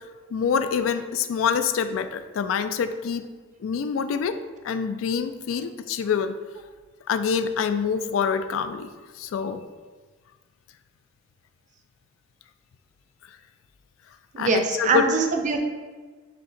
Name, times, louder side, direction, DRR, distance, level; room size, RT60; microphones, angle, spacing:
voice 1, 0.3-3.3 3.6-4.4 4.6-6.3 7.1-8.9 9.2-9.6 14.4-15.1, left 6 dB, 90° left, 10 dB, 0.3 m, -26 dB
voice 2, 14.3-15.6, right 4 dB, 40° right, 4 dB, 0.4 m, -23 dB
6.7 x 2.8 x 2.6 m, 1.4 s
head